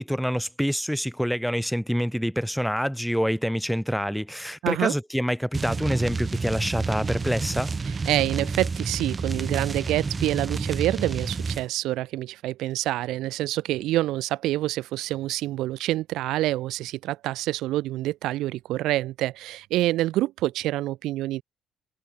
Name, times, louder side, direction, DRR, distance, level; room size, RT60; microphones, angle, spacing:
voice 1, 0.0-7.7, equal, ahead, 0.7 m, -26 dB
voice 2, 4.6-4.9 7.9-21.4, right 16 dB, 80° right, 0.4 m, -27 dB
sound 1, 5.5-11.7, right 4 dB, 35° right, 0.9 m, -29 dB
supercardioid pair, 65°, 0 cm